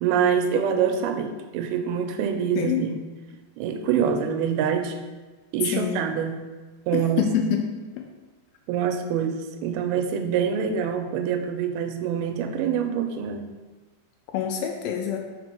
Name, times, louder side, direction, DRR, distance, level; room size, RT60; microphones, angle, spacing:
voice 1, 0.0-3.0 3.6-5.0 5.5-6.4 6.9-7.3 8.7-13.5, right 7 dB, 85° right, 5 dB, 2.4 m, -25 dB
voice 2, 2.6-2.9 5.7-6.1 6.9-7.7 8.0-8.1 14.3-15.2, left 8 dB, 80° left, 4 dB, 2.2 m, -26 dB
6.0 x 4.4 x 4.4 m, 1.3 s
omnidirectional pair, 4.4 m